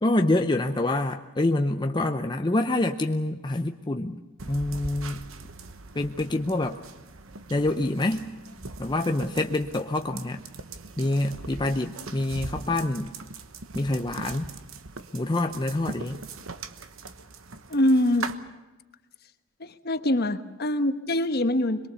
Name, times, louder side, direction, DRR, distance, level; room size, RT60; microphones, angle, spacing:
voice 1, 0.0-4.2 4.5-5.2 5.9-6.8 7.5-8.3 8.8-10.4 11.0-13.1 13.7-14.5 15.1-16.2, left 2 dB, 20° left, 5 dB, 0.6 m, -26 dB
sound 1, 4.4-18.3, right 3 dB, 70° right, 1.2 m, -41 dB
voice 2, 17.7-18.2 19.6-21.8, left 1 dB, 50° left, 9 dB, 1.2 m, -24 dB
23.0 x 22.5 x 7.0 m, 1.1 s
head